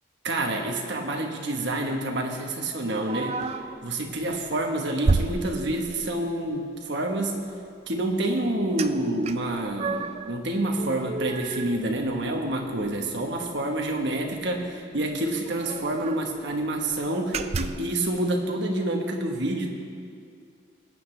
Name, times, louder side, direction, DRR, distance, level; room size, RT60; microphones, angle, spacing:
voice 1, 0.2-3.4 3.8-7.4 7.9-19.7, right 1 dB, 60° right, 2 dB, 1.3 m, -28 dB
sound 1, 3.1-3.8 4.3-4.5 5.0-6.2 8.8-8.9 9.2-10.3 10.7-12.5 12.8-12.9 13.3-13.5 14.6-14.7 14.9-15.0 15.5-16.3 16.8-16.9 17.3-18.0, right 3 dB, 30° right, 0.3 m, -30 dB
19.0 x 8.9 x 3.3 m, 2.3 s
head